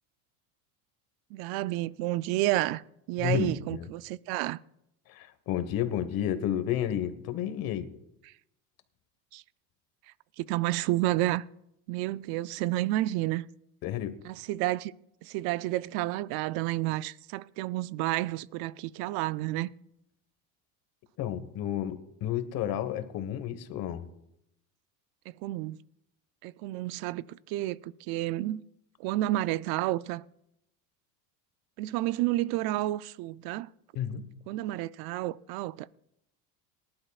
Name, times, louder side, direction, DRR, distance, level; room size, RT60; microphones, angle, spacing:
voice 1, 1.3-2.8 3.1-4.6 8.3-8.4 9.3-9.4 10.4-11.4 11.9-13.4 14.2-14.9 15.2-19.7 25.3-25.8 26.4-28.6 29.0-30.2 31.8-33.7 34.5-35.9, right 16 dB, 60° right, 0.5 m, -30 dB
voice 2, 3.2-3.9 5.1-7.9 13.8-14.2 21.2-24.0 33.9-34.3, left 10 dB, 55° left, 1.4 m, -31 dB
23.0 x 11.5 x 2.4 m
supercardioid pair, 120°, 42 cm